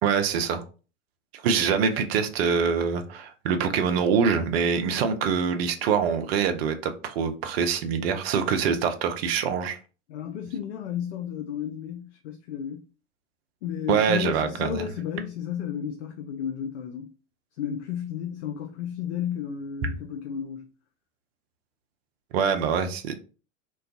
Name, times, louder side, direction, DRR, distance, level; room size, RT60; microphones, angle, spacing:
voice 1, 0.0-0.6 1.4-9.8 13.9-14.8 22.3-23.1, right 6 dB, 55° right, 0.5 m, -24 dB
voice 2, 10.1-12.8 13.6-17.1 17.6-20.7, left 9 dB, 65° left, 0.5 m, -33 dB
2.3 x 2.2 x 2.5 m
figure-of-eight pair, 90°, 38 cm